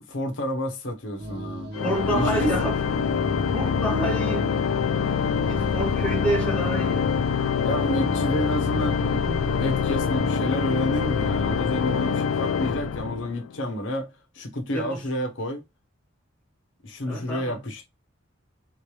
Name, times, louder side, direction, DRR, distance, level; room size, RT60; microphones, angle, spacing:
voice 1, 0.0-2.3 7.6-14.1 14.3-15.6 16.8-17.9, equal, 70° left, 0.9 m, -30 dB
sound 1, 1.2-12.2, equal, 55° right, 0.8 m, -34 dB
Organ, 1.7-13.6, left 7 dB, 85° left, 0.3 m, -25 dB
voice 2, 1.8-2.8 3.5-4.5 5.5-7.1 14.7-15.0 17.1-17.6, right 1 dB, 5° left, 1.5 m, -28 dB
3.6 x 3.2 x 3.1 m
head